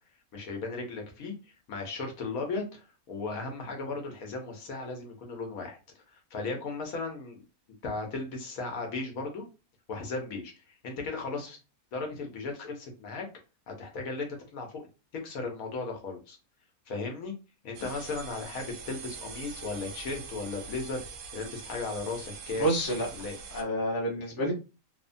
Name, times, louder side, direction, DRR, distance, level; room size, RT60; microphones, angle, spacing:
voice 1, 0.3-5.8 6.1-7.4 7.8-9.4 9.9-11.6 11.9-13.2 13.7-14.8 15.2-16.4 16.9-17.3 17.6-21.0 21.3-22.7 23.1-23.4, left 3 dB, 75° left, 2 dB, 1.2 m, -36 dB
sound 1, 17.7-23.6, right 5 dB, 85° right, 1.1 m, -43 dB
voice 2, 22.6-23.1 23.5-24.5, right 1 dB, 20° left, -3 dB, 0.7 m, -28 dB
3.1 x 2.1 x 2.5 m, 0.30 s
omnidirectional pair, 1.5 m